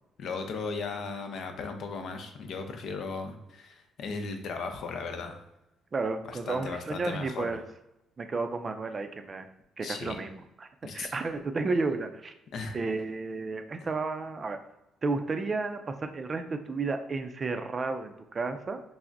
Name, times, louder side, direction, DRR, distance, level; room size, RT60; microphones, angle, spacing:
voice 1, 0.2-5.4 6.3-7.5 9.8-10.2 10.8-11.1 12.5-12.8, left 4 dB, 60° left, 5 dB, 0.6 m, -36 dB
voice 2, 5.9-7.6 8.2-9.5 9.8-12.3 12.7-14.6 15.0-18.8, right 3 dB, 30° right, 7 dB, 0.4 m, -32 dB
5.7 x 2.0 x 2.6 m, 0.90 s
cardioid pair, 110°, 0 cm